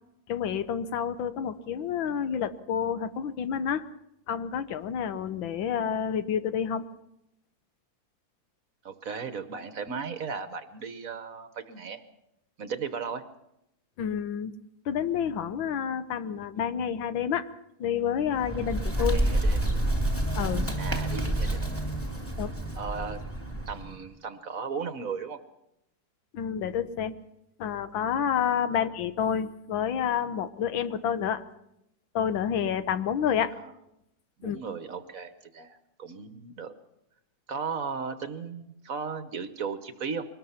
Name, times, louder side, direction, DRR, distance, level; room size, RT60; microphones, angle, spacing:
voice 1, 0.3-3.9 4.3-6.8 14.0-14.5 14.8-17.5 17.8-19.2 20.3-20.7 22.4-22.5 26.3-27.1 27.6-31.4 32.1-33.6 34.4-34.6, left 8 dB, 80° left, 12 dB, 1.7 m, -29 dB
voice 2, 8.8-12.0 12.6-13.2 19.0-19.7 20.8-21.6 22.8-23.2 23.7-25.4 33.5-33.7 34.4-36.7 37.5-40.3, right 5 dB, 50° right, 10 dB, 1.3 m, -36 dB
Bird, 18.2-24.0, right 1 dB, 5° left, 2.5 m, -28 dB
23.5 x 20.0 x 5.7 m, 0.82 s
omnidirectional pair, 2.1 m